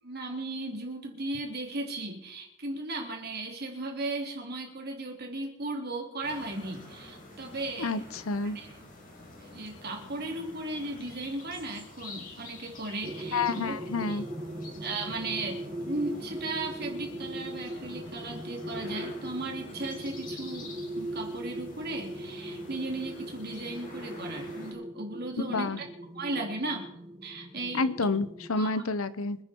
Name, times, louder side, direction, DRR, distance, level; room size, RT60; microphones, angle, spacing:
voice 1, 0.0-8.0 8.4-8.8 9.4-13.7 14.0-14.2 14.8-25.9 26.2-26.9 27.2-27.9 28.6-28.8, right 2 dB, 50° right, 1 dB, 3.6 m, -36 dB
sound 1, 6.2-24.7, left 2 dB, 40° left, 5.2 m, -48 dB
voice 2, 8.3-8.6 13.3-14.2 25.5-25.8 27.7-29.4, left 3 dB, 80° left, 14 dB, 0.9 m, -29 dB
sound 2, 13.0-28.6, right 1 dB, 20° right, 2.3 m, -40 dB
26.5 x 9.6 x 4.6 m, 0.82 s
head